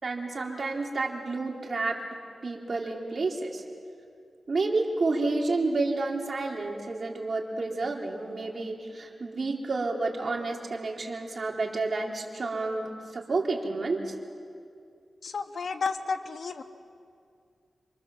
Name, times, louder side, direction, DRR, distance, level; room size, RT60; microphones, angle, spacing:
voice 1, 0.0-2.0 2.4-3.6 4.5-14.1, right 3 dB, 55° right, 0 dB, 4.0 m, -30 dB
voice 2, 15.2-16.6, left 4 dB, 70° left, 7 dB, 1.5 m, -32 dB
28.0 x 26.0 x 7.6 m, 2.3 s
cardioid pair, 70°, 0 cm